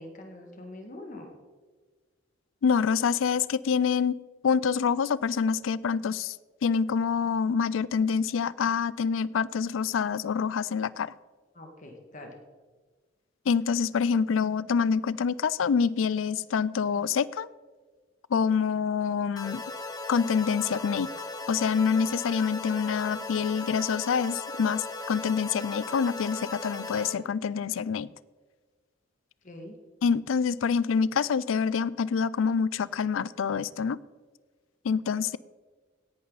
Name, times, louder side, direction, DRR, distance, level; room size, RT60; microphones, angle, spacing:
voice 1, 0.0-1.3 11.5-12.4 29.4-29.8, left 1 dB, 40° left, 3 dB, 1.9 m, -44 dB
voice 2, 2.6-4.2 4.4-6.4 6.6-11.1 13.5-17.5 18.3-19.6 20.1-21.1 21.5-28.1 30.0-34.0 34.8-35.4, left 6 dB, 90° left, 20 dB, 0.4 m, -26 dB
sound 1, 19.4-27.1, left 2 dB, 20° left, 1.0 m, -37 dB
17.5 x 11.0 x 4.1 m, 1.4 s
head